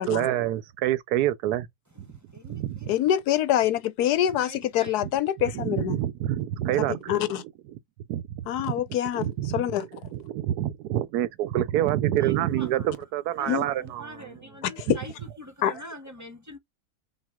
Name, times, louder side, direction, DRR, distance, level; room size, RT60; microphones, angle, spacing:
voice 1, 0.0-1.7 2.5-2.9 5.5-7.2 8.1-8.7 9.1-14.0 14.9-15.0, right 13 dB, 80° right, 1.1 m, -27 dB
voice 2, 1.9-2.9 4.4-5.0 12.2-13.0 13.3-16.6, left 1 dB, 15° right, 0.8 m, -44 dB
voice 3, 2.9-6.0 7.1-7.4 8.5-9.3 9.5-9.8 13.5-13.6 15.6-15.7, left 11 dB, 75° left, 1.2 m, -25 dB
5.5 x 2.4 x 3.5 m
omnidirectional pair, 1.7 m